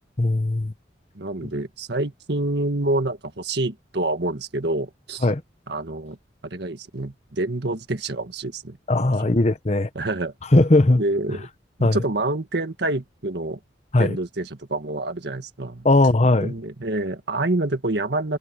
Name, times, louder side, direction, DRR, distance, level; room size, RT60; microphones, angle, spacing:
voice 1, 0.2-0.7 5.2-5.4 8.9-9.9 10.5-11.0 11.8-12.0 13.9-14.2 15.8-16.5, left 2 dB, 35° left, 0.9 m, -18 dB
voice 2, 1.2-5.3 5.7-6.2 6.4-9.3 10.0-10.3 10.9-11.5 11.8-13.6 14.0-15.9 16.4-18.4, right 2 dB, 60° right, 1.8 m, -27 dB
head